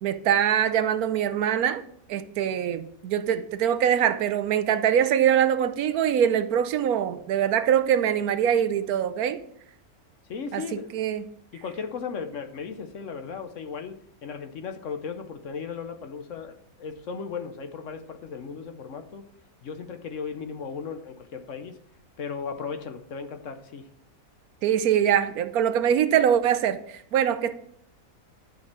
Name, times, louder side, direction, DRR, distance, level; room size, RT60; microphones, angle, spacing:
voice 1, 0.0-1.8 2.1-9.4 10.5-11.2 24.6-27.5, right 9 dB, 75° right, 1.1 m, -23 dB
voice 2, 10.3-10.9 11.5-19.3 19.6-21.8 22.2-23.9, left 5 dB, 60° left, 1.1 m, -36 dB
11.5 x 5.3 x 6.0 m
omnidirectional pair, 1.6 m